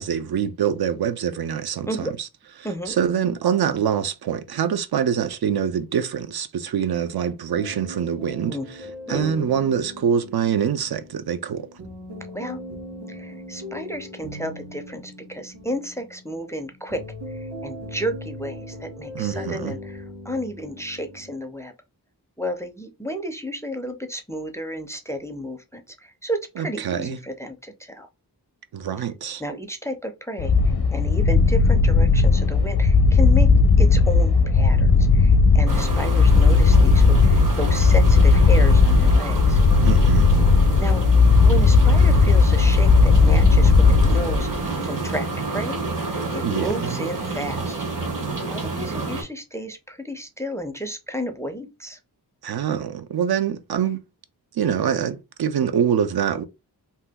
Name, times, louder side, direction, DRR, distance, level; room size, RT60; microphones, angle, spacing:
voice 1, 0.0-2.1 2.9-8.6 9.1-11.7 19.1-19.7 26.6-27.2 28.7-29.4 39.8-40.3 46.4-46.9 52.4-54.0 54.5-56.4, right 8 dB, 70° right, 0.5 m, -24 dB
voice 2, 1.9-2.2 2.6-3.0 8.4-8.7 9.1-9.4 12.3-12.6 13.1-21.7 22.4-28.1 29.4-33.5 33.8-39.6 40.8-41.1 41.4-45.8 46.3-47.9 48.5-52.0, equal, 10° left, 0.4 m, -32 dB
sound 1, 7.5-21.3, left 1 dB, 85° right, 1.4 m, -39 dB
sound 2, 30.4-44.7, left 4 dB, 75° left, 0.6 m, -16 dB
sound 3, 35.7-49.2, right 3 dB, 55° right, 1.0 m, -29 dB
2.8 x 2.2 x 3.4 m
wide cardioid pair, 90°, 39 cm